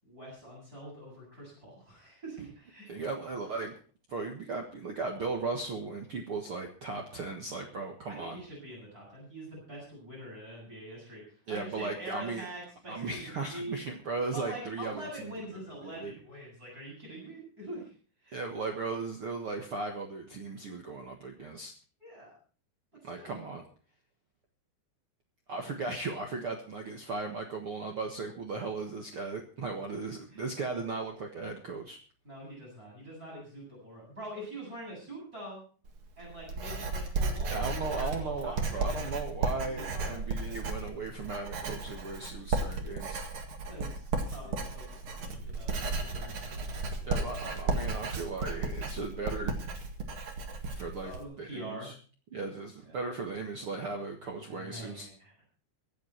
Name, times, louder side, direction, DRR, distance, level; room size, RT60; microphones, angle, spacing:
voice 1, 0.0-3.1 8.1-13.8 14.3-17.9 18.2-18.4 22.0-22.3 23.1-23.4 30.3-30.5 32.2-35.6 36.2-39.2 39.6-40.3 43.6-47.3 51.0-51.9 52.8-53.0 54.3-55.3, right 1 dB, 20° right, -4 dB, 8.2 m, -45 dB
voice 2, 2.9-3.7 4.1-8.4 11.5-12.5 12.9-15.3 15.8-16.2 18.3-21.7 23.0-23.6 25.5-32.0 37.5-43.2 47.0-49.6 50.7-51.9 52.3-55.1, right 3 dB, 75° right, 2 dB, 1.2 m, -37 dB
Writing, 35.9-51.2, right 3 dB, 45° right, 1.9 m, -34 dB
24.0 x 8.4 x 4.5 m, 0.41 s
omnidirectional pair, 4.9 m